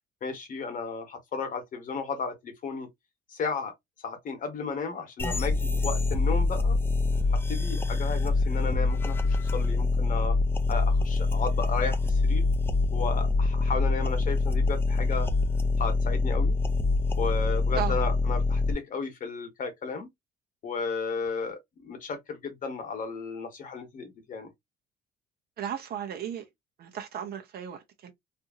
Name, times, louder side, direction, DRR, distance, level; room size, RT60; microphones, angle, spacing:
voice 1, 0.2-2.9 3.3-3.7 4.0-6.8 7.5-10.4 10.7-12.5 12.9-15.3 15.8-16.6 17.2-20.1 20.6-24.5, left 4 dB, 45° left, 1.0 m, -34 dB
sound 1, 5.2-18.7, left 3 dB, 10° left, 0.3 m, -25 dB
voice 2, 25.6-26.5 26.8-28.1, right 9 dB, 50° right, 0.7 m, -35 dB
2.7 x 2.6 x 2.4 m
cardioid pair, 135°, 20 cm